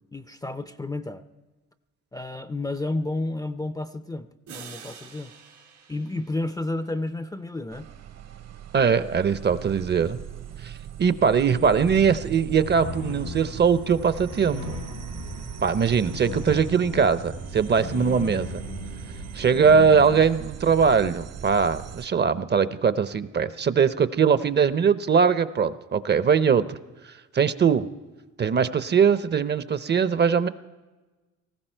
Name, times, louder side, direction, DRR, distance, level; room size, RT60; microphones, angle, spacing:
voice 1, 0.1-1.2 2.1-5.3 5.9-7.9, left 2 dB, 10° left, 12 dB, 0.4 m, -31 dB
sound 1, 4.5-7.3, right 7 dB, 85° right, 4.2 m, -47 dB
sound 2, 7.7-22.1, right 9 dB, 55° right, 0.9 m, -39 dB
voice 2, 8.7-10.2 10.6-10.7 11.0-14.8 15.6-18.6 19.3-26.8 27.3-27.9 28.4-30.5, right 6 dB, 35° right, 14 dB, 0.6 m, -21 dB
sound 3, 11.5-20.2, left 5 dB, 90° left, 6.3 m, -38 dB
19.0 x 15.0 x 4.4 m, 1.2 s
cardioid pair, 90°, 30 cm